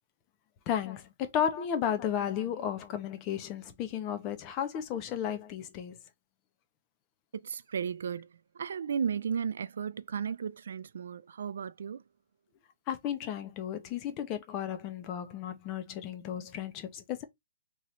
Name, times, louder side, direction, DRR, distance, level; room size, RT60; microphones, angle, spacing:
voice 1, 0.7-6.0 12.9-17.2, left 9 dB, 25° left, 0.9 m, -34 dB
voice 2, 7.3-8.3 8.5-12.0, right 7 dB, 75° right, 0.4 m, -34 dB
3.6 x 3.2 x 4.3 m
hypercardioid pair, 160°, 0 cm